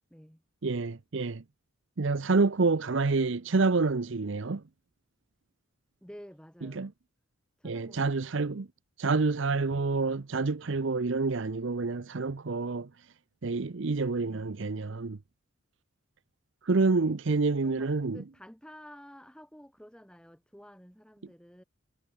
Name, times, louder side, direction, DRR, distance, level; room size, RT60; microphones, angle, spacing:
voice 1, 0.1-0.4 6.0-6.9 7.6-8.2 14.2-14.7 16.9-17.2 17.5-21.6, equal, 5° left, 7.8 m, -51 dB
voice 2, 0.6-1.4 2.0-4.6 6.7-6.9 7.6-8.7 9.0-12.9 13.4-15.2 16.6-18.2, right 3 dB, 60° right, 0.7 m, -28 dB
head